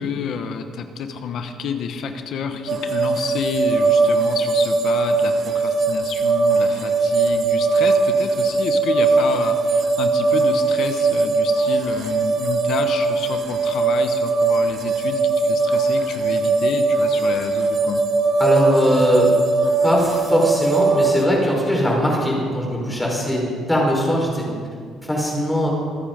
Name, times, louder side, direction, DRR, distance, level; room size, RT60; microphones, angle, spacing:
voice 1, 0.0-18.0, left 6 dB, 60° left, 7 dB, 1.1 m, -29 dB
sound 1, 2.7-21.2, right 4 dB, 50° right, 1.4 m, -20 dB
voice 2, 18.4-19.3 19.8-24.5 25.1-25.7, equal, 10° left, -2 dB, 4.6 m, -20 dB
25.0 x 8.8 x 5.2 m, 2.1 s
cardioid pair, 125°, 0 cm